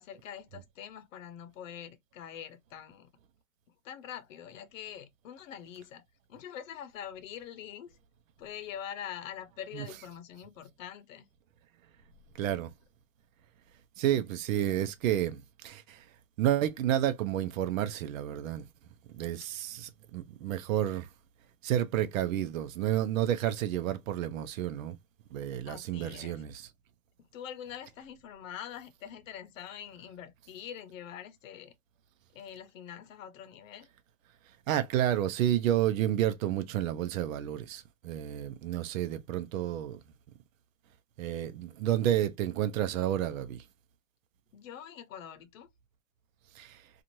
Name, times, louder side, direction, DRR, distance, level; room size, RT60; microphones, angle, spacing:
voice 1, 0.0-3.1 3.8-8.0 8.4-11.3 25.7-26.4 27.3-31.7 32.3-33.9 44.5-45.7, left 9 dB, 65° left, 0.8 m, -44 dB
voice 2, 12.4-12.7 14.0-16.1 16.4-18.6 19.1-21.1 21.6-25.0 25.3-26.7 34.7-40.0 41.2-43.6 46.5-46.8, right 11 dB, 70° right, 0.7 m, -30 dB
2.6 x 2.5 x 2.9 m
hypercardioid pair, 145°, 42 cm